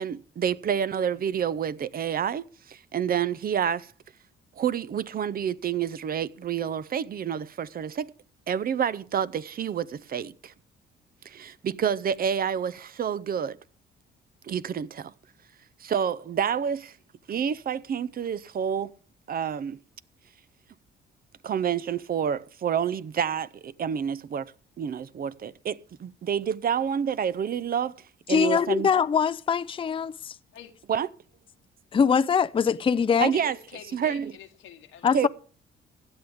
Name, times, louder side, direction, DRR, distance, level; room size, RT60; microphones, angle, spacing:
voice 1, 0.0-3.9 4.6-8.1 8.5-10.5 11.2-13.6 14.4-15.1 15.8-17.0 17.3-18.9 19.3-19.8 21.4-24.5 24.8-27.9 28.3-28.9 30.9-31.1 33.2-33.6 33.9-34.3 35.1-35.3, right 8 dB, 50° right, 0.6 m, -28 dB
voice 2, 28.3-30.4 31.9-33.3 35.0-35.3, left 6 dB, 25° left, 0.5 m, -23 dB
voice 3, 33.3-35.3, left 10 dB, 85° left, 1.6 m, -46 dB
16.5 x 11.5 x 3.6 m
cardioid pair, 90°, 20 cm